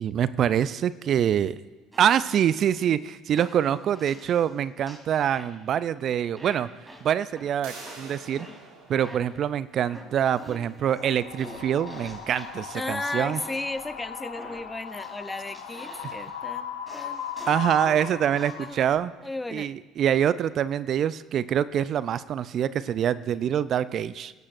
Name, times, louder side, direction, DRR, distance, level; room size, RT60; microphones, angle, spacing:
voice 1, 0.0-1.6 2.0-6.7 7.0-8.5 8.9-13.4 17.5-19.1 19.5-24.3, right 9 dB, 50° right, 17 dB, 0.3 m, -25 dB
sound 1, 1.9-2.9 3.4-4.5 4.9-5.8 6.4-7.5 7.9-9.5 9.9-13.0 13.4-13.8 14.4-16.4 16.9-17.8 18.4-18.8, right 1 dB, 15° right, 3.3 m, -47 dB
sound 2, 7.6-13.2, right 3 dB, 75° right, 3.8 m, -49 dB
Wind, 10.8-18.9, left 8 dB, 85° left, 1.1 m, -38 dB
voice 2, 12.7-18.8 19.2-19.7, left 2 dB, 15° left, 13 dB, 0.6 m, -35 dB
17.5 x 12.0 x 2.6 m, 1.2 s
hypercardioid pair, 65°, 0 cm